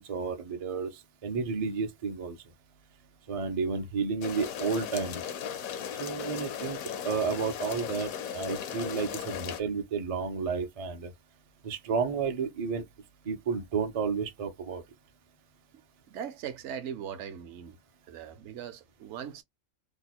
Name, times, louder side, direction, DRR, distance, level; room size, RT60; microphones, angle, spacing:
voice 1, 0.0-2.4 3.3-5.2 6.0-6.8 7.0-11.1 11.6-12.9 13.2-14.8, right 5 dB, 45° right, 0.4 m, -31 dB
sound 1, 4.2-9.6, left 8 dB, 80° left, 1.0 m, -37 dB
voice 2, 16.1-17.8 18.1-19.4, right 8 dB, 65° right, 0.9 m, -39 dB
2.8 x 2.2 x 4.0 m
omnidirectional pair, 1.5 m